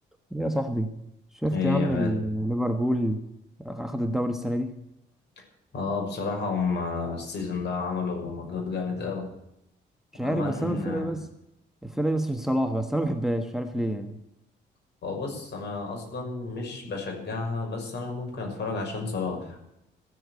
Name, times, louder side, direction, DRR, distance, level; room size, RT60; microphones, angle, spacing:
voice 1, 0.3-0.9 1.4-3.2 3.6-4.8 10.1-11.3 11.8-14.2, right 1 dB, ahead, 7 dB, 1.3 m, -27 dB
voice 2, 1.5-2.2 5.7-9.3 10.2-11.2 15.0-19.7, left 4 dB, 60° left, 1 dB, 6.2 m, -31 dB
15.0 x 7.8 x 9.3 m, 0.82 s
cardioid pair, 90°, 20 cm